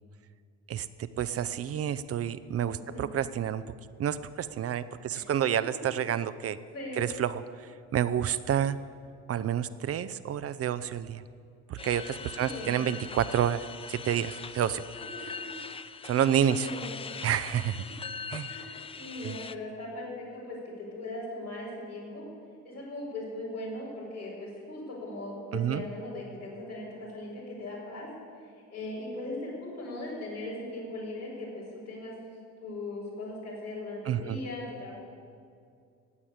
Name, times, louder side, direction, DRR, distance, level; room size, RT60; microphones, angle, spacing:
voice 1, 0.7-3.6 4.0-6.6 7.0-8.8 9.3-11.2 11.7-14.8 15.2-15.3 16.0-16.7 17.2-17.8 18.3-18.5 19.2-19.3 25.5-25.8 34.1-34.4, right 9 dB, 35° right, 14 dB, 0.6 m, -29 dB
voice 2, 2.7-3.1 5.1-5.2 6.7-7.1 12.4-12.8 15.1-15.7 16.5-17.1 17.6-17.7 18.5-22.3 22.6-28.1 28.4-32.1 32.6-34.9, left 1 dB, 90° left, -7 dB, 4.9 m, -39 dB
sound 1, 11.8-19.5, left 6 dB, 15° left, 0.4 m, -42 dB
17.0 x 8.6 x 8.4 m, 2.3 s
figure-of-eight pair, 55°, 43 cm